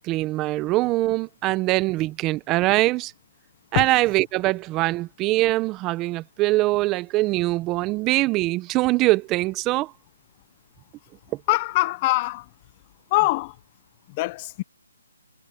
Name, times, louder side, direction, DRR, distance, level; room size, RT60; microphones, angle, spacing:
voice 1, 0.0-3.1 3.7-9.9, right 19 dB, 15° right, 1.1 m, -23 dB
voice 2, 11.5-12.5 13.1-13.6 14.1-14.6, left 21 dB, 25° left, 0.8 m, -23 dB
hypercardioid pair, 155°, 0 cm